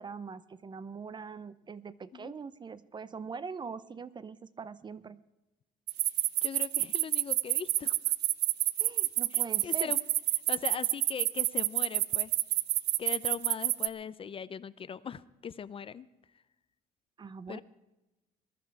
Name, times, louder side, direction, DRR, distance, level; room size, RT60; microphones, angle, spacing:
voice 1, 0.0-5.2 8.8-9.9 17.2-17.6, right 5 dB, 25° right, 16 dB, 0.6 m, -42 dB
sound 1, 5.9-13.9, right 17 dB, 80° right, 0.5 m, -28 dB
voice 2, 6.4-7.9 9.3-10.0 10.5-12.3 13.0-16.1 17.5-17.6, left 7 dB, 35° left, 16 dB, 0.5 m, -40 dB
20.5 x 11.0 x 4.7 m, 1.0 s
cardioid pair, 110°, 17 cm